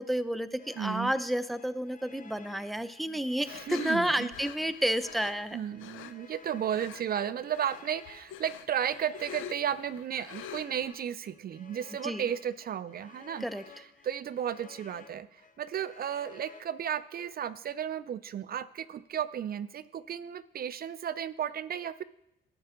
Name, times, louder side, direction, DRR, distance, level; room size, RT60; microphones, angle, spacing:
voice 1, 0.0-5.6 12.0-12.3 13.4-13.6, right 1 dB, ahead, 12 dB, 0.6 m, -31 dB
sound 1, 0.6-17.0, left 5 dB, 40° left, 1.2 m, -55 dB
voice 2, 0.8-1.1 3.5-4.3 5.5-13.4 14.0-15.3 15.6-22.0, right 9 dB, 50° right, 15 dB, 0.4 m, -34 dB
sound 2, 3.4-6.1 6.7-7.2 7.5-10.9, left 9 dB, 85° left, 0.7 m, -46 dB
12.0 x 8.0 x 3.8 m, 0.81 s
cardioid pair, 90°, 20 cm